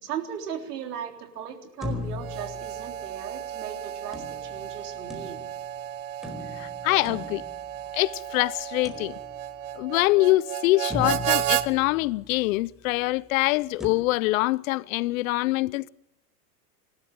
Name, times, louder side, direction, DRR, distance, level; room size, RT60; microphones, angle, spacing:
voice 1, 0.0-5.4, right 8 dB, 85° right, 3.8 m, -37 dB
sound 1, 1.8-3.4 4.1-5.7 6.2-8.1 8.8-9.7 10.2-10.3 10.9-12.6 13.8-13.9, left 3 dB, ahead, 4.4 m, -38 dB
Harmonica, 2.1-11.7, right 13 dB, 65° right, 1.3 m, -33 dB
voice 2, 6.5-7.4 7.9-9.2 9.8-15.9, left 19 dB, 60° left, 0.7 m, -24 dB
26.0 x 13.0 x 8.9 m
hypercardioid pair, 115°, 46 cm